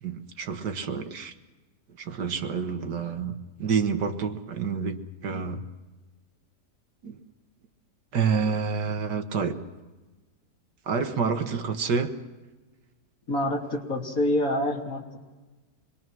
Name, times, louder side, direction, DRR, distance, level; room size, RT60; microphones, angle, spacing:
voice 1, 0.0-1.3 2.0-5.6 7.0-7.2 8.1-9.6 10.9-12.1, right 5 dB, 80° right, 7 dB, 2.0 m, -28 dB
voice 2, 13.3-15.0, left 1 dB, 55° left, -1 dB, 3.4 m, -26 dB
26.0 x 22.0 x 6.2 m, 1.2 s
omnidirectional pair, 1.8 m